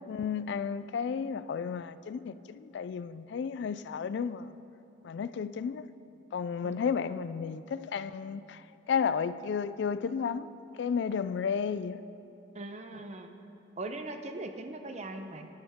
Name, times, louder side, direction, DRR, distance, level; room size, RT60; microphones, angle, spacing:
voice 1, 0.1-4.5 5.0-5.8 6.3-8.6 8.9-10.5 10.8-12.0, left 6 dB, 65° left, 0.3 m, -32 dB
voice 2, 6.6-7.1 12.5-13.3 13.8-15.5, right 2 dB, 40° right, 0.7 m, -40 dB
19.0 x 9.0 x 3.6 m
head